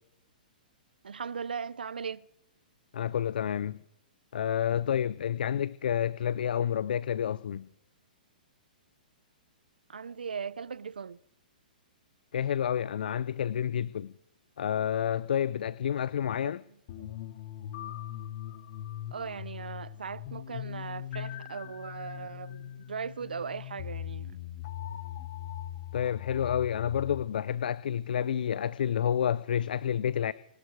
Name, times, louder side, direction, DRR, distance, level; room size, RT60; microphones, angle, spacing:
voice 1, 1.0-2.3 9.9-11.2 16.4-16.6 17.0-17.1 19.1-24.4, right 6 dB, 85° right, 0.6 m, -38 dB
voice 2, 2.9-3.8 4.3-7.7 12.3-14.1 14.6-16.6 25.9-30.3, left 9 dB, 70° left, 0.5 m, -29 dB
sound 1, 16.9-27.2, left 11 dB, 50° left, 1.1 m, -40 dB
25.0 x 11.5 x 4.7 m
hypercardioid pair, 125°, 5 cm